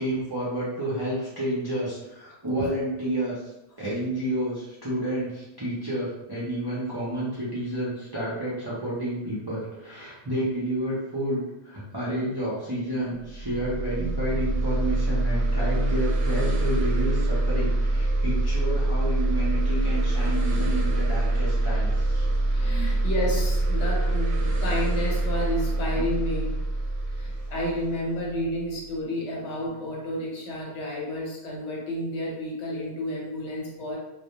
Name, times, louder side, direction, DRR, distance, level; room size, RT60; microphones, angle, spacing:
voice 1, 0.0-3.4 3.8-22.4 22.8-23.0, right 1 dB, 35° right, -9 dB, 0.4 m, -30 dB
sound 1, 13.2-28.7, right 2 dB, 70° right, 0.8 m, -25 dB
voice 2, 22.5-26.6 27.1-34.0, equal, 75° left, -3 dB, 1.0 m, -31 dB
2.1 x 2.1 x 2.8 m, 0.93 s
omnidirectional pair, 1.2 m